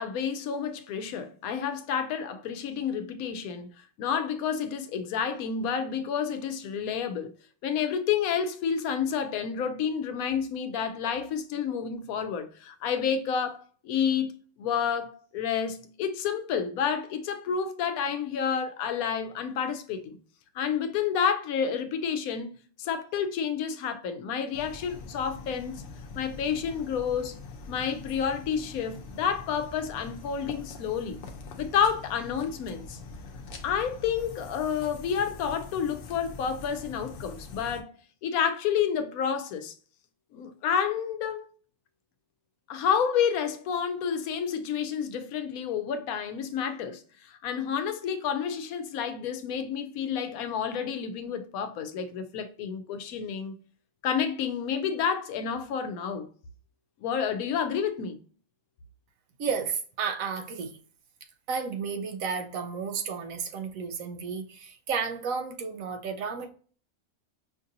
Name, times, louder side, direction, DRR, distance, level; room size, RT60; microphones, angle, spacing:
voice 1, 0.0-7.3 7.6-14.3 14.6-20.2 20.5-22.5 22.8-25.8 26.1-27.4 27.7-31.2 31.6-33.0 33.6-37.9 38.2-39.7 40.3-41.5 42.7-53.5 54.0-56.3 57.0-58.2, left 7 dB, 80° left, 1.0 m, -30 dB
sound 1, 24.5-37.8, left 3 dB, 60° left, 0.6 m, -44 dB
voice 2, 59.4-60.8 61.5-66.5, right 5 dB, 75° right, 1.0 m, -32 dB
5.1 x 2.5 x 2.7 m
omnidirectional pair, 1.5 m